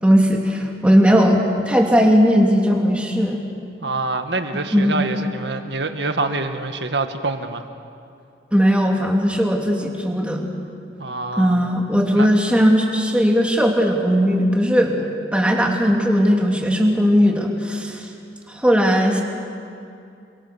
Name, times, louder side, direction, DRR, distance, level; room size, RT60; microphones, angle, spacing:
voice 1, 0.0-3.4 4.7-5.0 8.5-10.5 11.4-18.1 18.5-19.2, equal, 5° right, 0 dB, 2.8 m, -18 dB
voice 2, 3.8-7.6 11.0-11.7 12.1-12.3, right 3 dB, 80° right, 7 dB, 1.7 m, -26 dB
29.0 x 23.5 x 6.9 m, 2.5 s
head